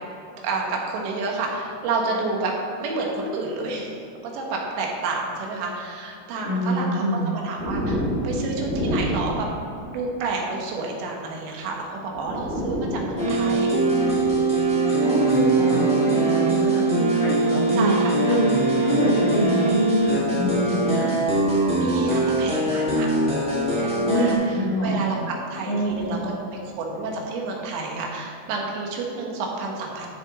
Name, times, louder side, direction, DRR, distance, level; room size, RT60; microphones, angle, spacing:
voice 1, 0.4-2.5 2.8-9.5 9.9-13.7 14.1-14.5 17.7-18.4 21.8-23.1 23.4-25.2 25.5-26.3 26.8-30.1, right 3 dB, 85° right, -1 dB, 3.7 m, -30 dB
voice 2, 6.4-7.2 15.0-17.9 18.3-18.5 18.8-21.1 24.0-25.2 25.7-26.2, equal, 85° left, -11 dB, 4.4 m, -25 dB
sound 1, 7.6-10.3 11.6-11.7 12.0-15.6 16.5-16.7 17.9-20.8 22.3-22.5 24.2-25.0 25.8-27.2, equal, 60° right, 4.4 m, -32 dB
sound 2, 13.2-24.3, right 2 dB, 5° right, 0.6 m, -22 dB
12.5 x 7.1 x 4.1 m, 2.6 s
omnidirectional pair, 4.9 m